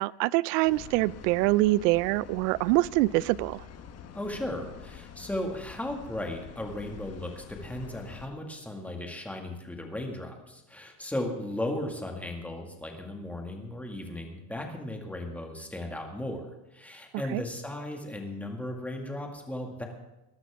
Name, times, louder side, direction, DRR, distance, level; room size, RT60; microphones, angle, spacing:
voice 1, 0.0-3.6 17.3-17.4, right 19 dB, 80° right, 22 dB, 0.6 m, -25 dB
sound 1, 0.6-8.3, left 8 dB, 30° left, 1.3 m, -46 dB
voice 2, 4.1-16.5 16.7-19.9, left 1 dB, 5° left, 2 dB, 2.0 m, -36 dB
20.5 x 12.0 x 3.6 m, 1.0 s
supercardioid pair, 145°, 47 cm